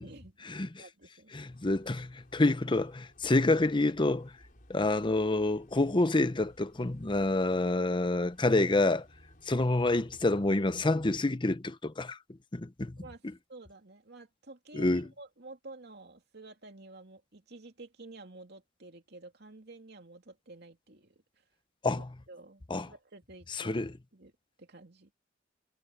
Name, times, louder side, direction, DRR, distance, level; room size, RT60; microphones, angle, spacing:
voice 1, 0.0-1.5 13.0-13.2 13.5-21.2 21.9-24.3 24.6-25.1, right 2 dB, 60° right, 2.7 m, -51 dB
voice 2, 1.3-4.3 4.7-9.1 9.4-12.2 12.5-13.0 14.7-15.0 21.8-22.1 22.7-22.9 23.6-23.9, left 2 dB, 25° left, 0.8 m, -27 dB
sound 1, 1.5-11.2, equal, 45° left, 5.3 m, -59 dB
head